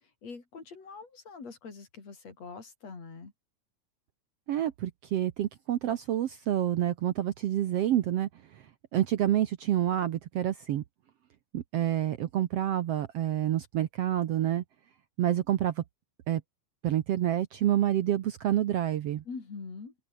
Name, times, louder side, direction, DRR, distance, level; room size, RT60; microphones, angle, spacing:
voice 1, 0.0-3.3 19.3-19.9, left 4 dB, 55° left, 5.6 m, -44 dB
voice 2, 4.5-8.3 8.9-10.8 11.5-14.6 15.2-15.8 16.3-16.4 16.8-19.2, right 12 dB, 65° right, 1.7 m, -28 dB
open air
omnidirectional pair, 3.6 m